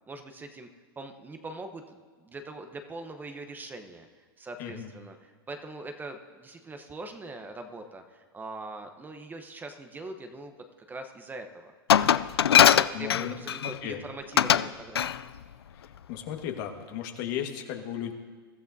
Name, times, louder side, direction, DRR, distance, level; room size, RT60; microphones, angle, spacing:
voice 1, 0.1-0.7 1.0-10.5 10.9-15.1, right 2 dB, 15° right, 6 dB, 0.9 m, -42 dB
Glass, 11.9-13.7 14.4-14.7 14.9-15.2, left 9 dB, 90° left, 0.4 m, -20 dB
voice 2, 12.9-13.3 13.6-14.0 15.7-18.1, left 9 dB, 55° left, 4 dB, 1.6 m, -35 dB
22.5 x 13.5 x 2.7 m, 1.5 s
hypercardioid pair, 115°, 13 cm